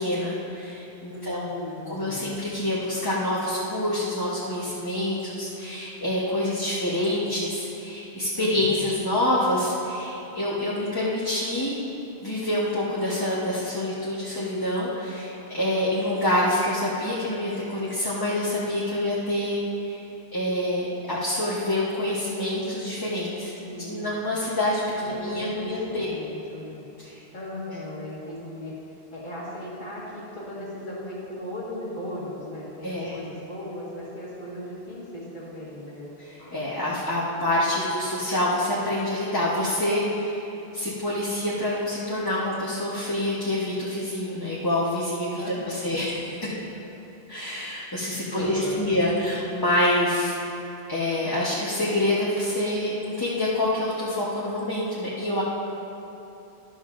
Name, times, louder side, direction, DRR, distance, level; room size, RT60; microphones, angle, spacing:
voice 1, 0.0-1.6 1.9-11.8 12.2-20.0 20.3-23.5 23.9-26.1 27.0-27.2 32.8-33.2 36.2-46.4 47.3-50.3 50.9-55.4, left 1 dB, 20° left, -8 dB, 1.1 m, -26 dB
voice 2, 1.1-2.3 8.3-8.9 23.6-24.1 25.0-26.9 27.3-28.7 29.1-36.1 45.4-45.8 46.6-46.7 48.2-49.0, left 1 dB, 45° left, -6 dB, 1.9 m, -37 dB
12.5 x 12.0 x 2.6 m, 2.9 s
omnidirectional pair, 1.1 m